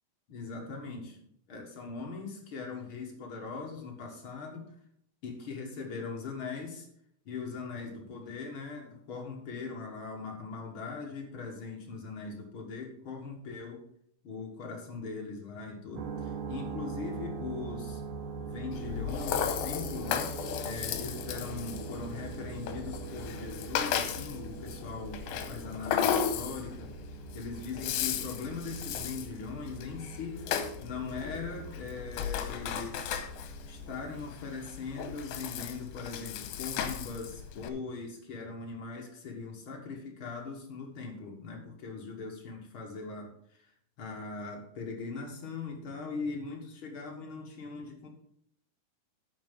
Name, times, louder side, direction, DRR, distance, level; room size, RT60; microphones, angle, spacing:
voice 1, 0.3-1.2 1.5-4.7 5.2-6.9 7.3-13.8 14.2-18.0 18.4-20.3 20.6-30.5 30.8-33.2 33.7-43.7 44.0-48.1, left 4 dB, 50° left, 0 dB, 1.6 m, -40 dB
sound 1, 16.0-34.3, right 5 dB, 75° right, 2.1 m, -43 dB
Rattle (instrument), 18.7-37.7, left 8 dB, 80° left, 2.5 m, -35 dB
9.5 x 6.7 x 5.4 m, 0.70 s
omnidirectional pair, 4.3 m